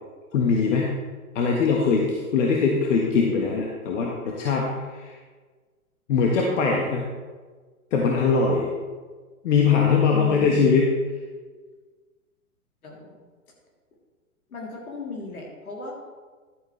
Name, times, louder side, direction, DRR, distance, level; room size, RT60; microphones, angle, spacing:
voice 1, 0.3-0.9 1.3-4.7 4.9-5.1 6.1-7.1 7.9-8.7 9.4-10.9, left 5 dB, 55° left, -1 dB, 1.5 m, -21 dB
voice 2, 10.1-10.7 12.8-13.3 14.5-15.9, left 2 dB, 75° left, -2 dB, 3.2 m, -36 dB
11.5 x 8.8 x 3.2 m, 1.4 s
hypercardioid pair, 125°, 44 cm